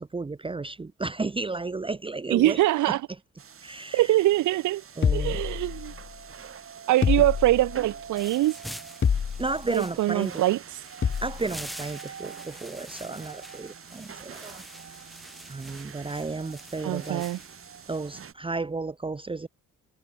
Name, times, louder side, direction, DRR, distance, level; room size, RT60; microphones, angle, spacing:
voice 1, 0.0-2.6 2.9-3.0 3.6-4.2 5.0-5.4 7.2-7.3 9.4-10.4 11.2-14.6 14.9-15.1 15.5-17.3 17.9-19.5, right 3 dB, 15° right, 0.9 m, -33 dB
voice 2, 2.3-3.0 3.9-4.8 5.1-5.9 6.9-8.6 9.7-10.8 16.8-17.4, right 16 dB, 80° right, 0.9 m, -23 dB
sound 1, 3.4-18.3, right 7 dB, 45° right, 3.8 m, -45 dB
sound 2, 5.0-6.1 7.0-7.9 9.0-9.7 11.0-11.5, left 7 dB, 40° left, 1.6 m, -27 dB
sound 3, 8.2-18.0, equal, ahead, 2.8 m, -46 dB
cardioid pair, 90°, 30 cm